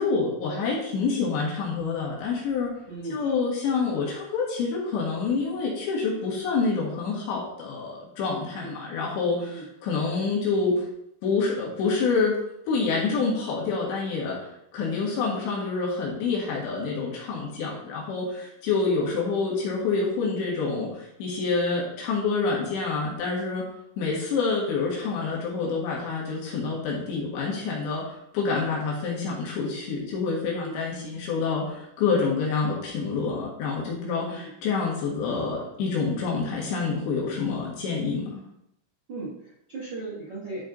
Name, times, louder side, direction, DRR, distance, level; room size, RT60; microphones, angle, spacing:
voice 1, 0.0-2.7 3.1-10.8 11.2-12.4 12.7-23.7 24.0-38.4, left 4 dB, 70° left, -4 dB, 3.7 m, -27 dB
voice 2, 2.9-3.2 8.5-8.8 9.5-9.6 30.4-31.1 34.3-34.5 39.1-40.6, right 3 dB, 90° right, -7 dB, 1.0 m, -37 dB
12.0 x 4.2 x 3.9 m, 0.78 s
omnidirectional pair, 5.6 m